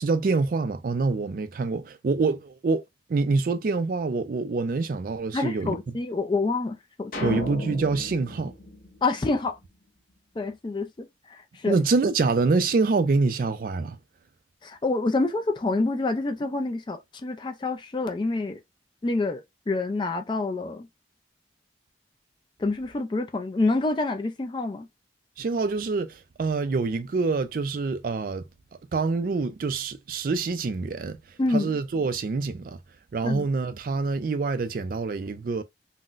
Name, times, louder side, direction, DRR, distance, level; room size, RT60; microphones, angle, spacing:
voice 1, 0.0-2.8 3.1-5.8 7.2-8.6 11.6-14.0 25.4-28.4 28.9-32.8 33.1-35.6, right 4 dB, 50° right, 0.3 m, -26 dB
voice 2, 5.3-7.4 9.0-9.6 10.4-11.8 14.6-18.6 19.0-20.9 22.6-24.9 31.4-31.7 33.2-33.5, left 3 dB, 25° left, 0.3 m, -27 dB
sound 1, 7.1-9.7, equal, 50° left, 0.7 m, -36 dB
3.8 x 2.1 x 2.4 m
head